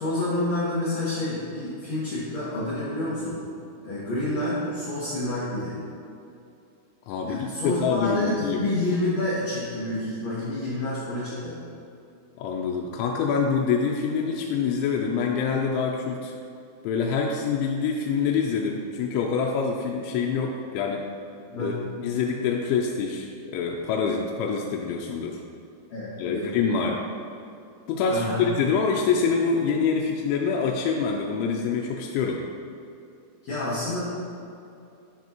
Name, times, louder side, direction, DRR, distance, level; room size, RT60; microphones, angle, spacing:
voice 1, 0.0-3.4 3.8-5.7 7.3-11.6 21.5-21.8 25.9-26.6 28.1-28.5 33.4-34.0, left 2 dB, 65° left, -10 dB, 1.7 m, -28 dB
voice 2, 7.1-8.6 12.4-16.3 16.8-21.1 21.5-25.4 26.2-27.0 27.9-32.4, left 5 dB, 85° left, 0 dB, 2.9 m, -26 dB
9.7 x 6.0 x 2.9 m, 2.6 s
omnidirectional pair, 5.2 m